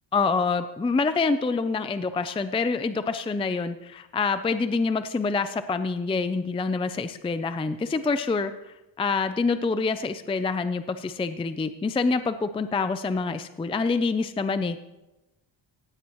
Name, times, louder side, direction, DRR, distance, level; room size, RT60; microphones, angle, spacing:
voice 1, 0.1-8.5 9.0-14.8, left 4 dB, 15° left, 11 dB, 0.4 m, -26 dB
16.5 x 16.5 x 3.0 m, 0.99 s
wide cardioid pair, 165°, 47 cm